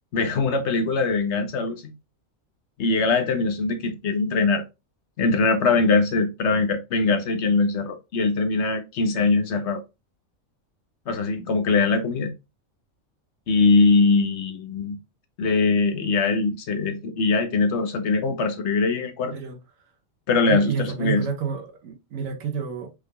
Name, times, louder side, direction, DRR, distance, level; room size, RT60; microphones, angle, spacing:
voice 1, 0.1-1.9 2.8-4.6 5.2-9.8 11.1-12.3 13.5-15.0 15.4-19.3 20.3-21.2, left 3 dB, 60° left, 1.1 m, -22 dB
voice 2, 19.2-19.6 20.4-22.9, right 6 dB, 90° right, 1.3 m, -29 dB
5.1 x 3.4 x 2.3 m
omnidirectional pair, 1.3 m